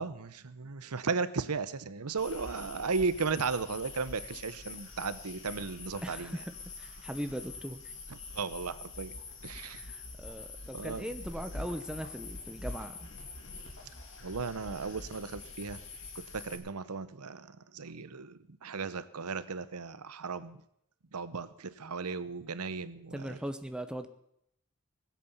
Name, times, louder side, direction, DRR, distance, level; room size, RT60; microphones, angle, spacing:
voice 1, 0.0-6.4 8.1-9.8 10.7-11.1 14.2-15.8 16.1-20.6 21.1-23.4, right 4 dB, 85° right, 15 dB, 0.8 m, -36 dB
sound 1, 2.2-16.6, left 3 dB, 55° left, 2.7 m, -45 dB
voice 2, 6.0-6.4 6.8-7.9 9.7-13.1 23.1-24.1, equal, 5° right, 8 dB, 0.8 m, -39 dB
19.5 x 8.4 x 7.2 m, 0.75 s
head